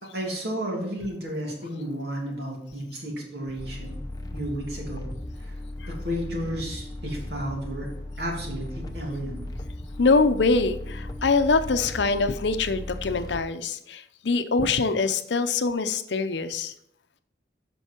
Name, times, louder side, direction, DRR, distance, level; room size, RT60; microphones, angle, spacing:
voice 1, 0.0-4.0 4.3-5.1 5.9-7.9 8.2-9.4, equal, 65° right, -1 dB, 2.7 m, -32 dB
sound 1, 3.6-13.4, left 1 dB, 20° left, 0.7 m, -37 dB
voice 2, 10.0-16.7, left 3 dB, 80° left, 10 dB, 0.7 m, -24 dB
8.2 x 6.2 x 4.4 m, 0.73 s
head